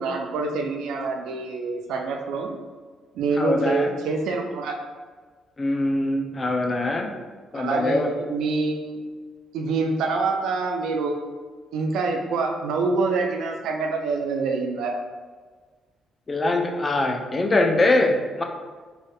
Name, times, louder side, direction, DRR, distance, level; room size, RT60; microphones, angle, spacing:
voice 1, 0.0-2.5 3.1-4.8 7.5-9.0 9.5-11.2 11.7-15.0, right 3 dB, 85° right, 3 dB, 0.3 m, -26 dB
voice 2, 3.4-3.9 5.6-7.1 7.5-8.1 16.3-18.4, left 2 dB, 30° left, 3 dB, 0.4 m, -23 dB
3.2 x 2.7 x 2.3 m, 1.4 s
cardioid pair, 90°, 0 cm